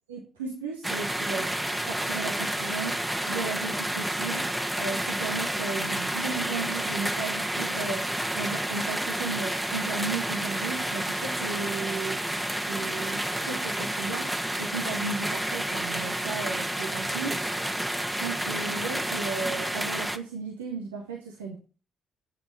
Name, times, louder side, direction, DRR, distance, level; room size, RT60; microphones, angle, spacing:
voice 1, 0.1-1.5 1.9-12.3 12.7-17.4 18.0-21.6, right 4 dB, 85° right, -1 dB, 1.8 m, -35 dB
sound 1, 0.8-20.2, right 1 dB, 10° right, 1.6 m, -30 dB
10.5 x 9.0 x 5.5 m, 0.37 s
hypercardioid pair, 45°, 0 cm